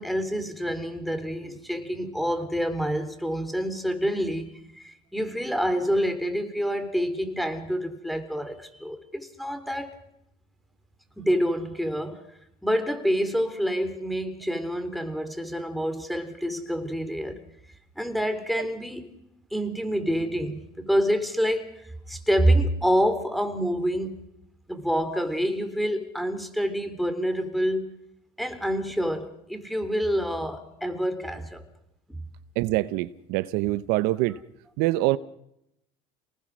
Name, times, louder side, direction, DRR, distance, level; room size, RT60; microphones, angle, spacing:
voice 1, 0.0-9.9 11.2-12.2 12.6-17.4 18.0-19.1 19.5-24.2 24.7-27.9 28.4-31.6 32.1-32.2, equal, ahead, 3.5 m, -27 dB
voice 2, 32.6-34.4 34.8-35.2, right 18 dB, 70° right, 0.9 m, -25 dB
29.0 x 19.5 x 6.3 m
supercardioid pair, 100°, 16 cm